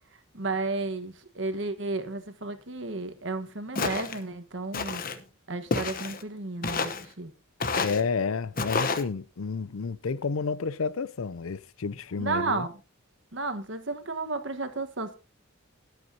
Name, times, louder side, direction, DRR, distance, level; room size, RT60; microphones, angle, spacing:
voice 1, 0.3-5.0 5.5-7.3 12.2-12.7 13.3-15.2, right 3 dB, 60° right, 1.4 m, -32 dB
Walk footsteps, 3.8-4.2 4.7-5.2 5.7-6.2 6.6-7.1 7.6-8.0 8.6-9.0, left 4 dB, 45° left, 1.0 m, -29 dB
voice 2, 7.8-12.7, left 5 dB, 85° left, 0.6 m, -30 dB
22.0 x 8.1 x 2.8 m
head